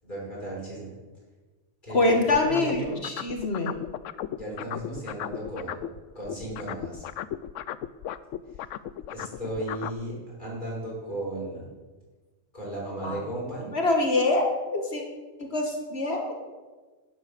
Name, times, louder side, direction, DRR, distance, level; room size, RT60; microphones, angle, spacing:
voice 1, 0.0-1.0 1.8-3.0 4.3-5.8 6.1-7.0 8.5-8.6 9.1-11.7 12.5-13.7, right 1 dB, 40° left, -5 dB, 5.9 m, -35 dB
voice 2, 1.9-3.8 13.0-13.2 13.7-15.0 15.4-16.3, left 2 dB, 55° left, 2 dB, 1.7 m, -25 dB
sound 1, 2.3-6.0 6.2-10.0, left 11 dB, 80° left, 0.9 m, -35 dB
12.0 x 10.0 x 6.7 m, 1.3 s
omnidirectional pair, 1.3 m